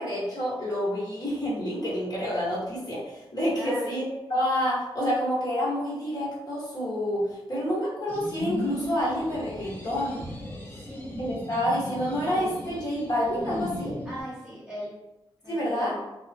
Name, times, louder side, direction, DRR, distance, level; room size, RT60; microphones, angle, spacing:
voice 1, 0.0-4.0 4.3-10.2 11.2-13.9 15.5-15.9, equal, 45° left, -7 dB, 1.2 m, -28 dB
voice 2, 3.6-3.9 10.6-11.1 14.0-14.9 15.4-16.0, equal, 10° right, -9 dB, 1.2 m, -39 dB
sound 1, 8.1-14.2, left 1 dB, 25° left, 0.6 m, -36 dB
3.3 x 2.2 x 2.6 m, 0.97 s
wide cardioid pair, 125°, 9 cm